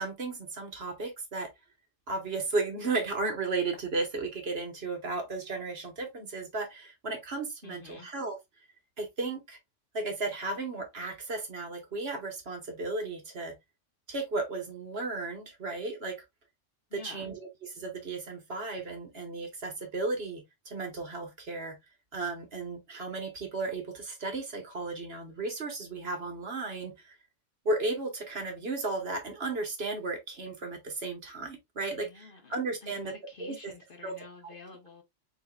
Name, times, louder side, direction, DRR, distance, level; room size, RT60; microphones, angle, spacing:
voice 1, 0.0-1.5 2.1-8.4 9.0-9.6 9.9-13.5 14.1-16.2 16.9-21.7 22.1-27.1 27.6-33.1 33.4-33.7 34.0-34.1 34.4-34.5, right 3 dB, 55° right, 1.4 m, -34 dB
voice 2, 7.6-8.1 16.9-17.3 31.9-35.0, left 4 dB, 45° left, 1.1 m, -49 dB
4.6 x 4.1 x 2.3 m
omnidirectional pair, 1.3 m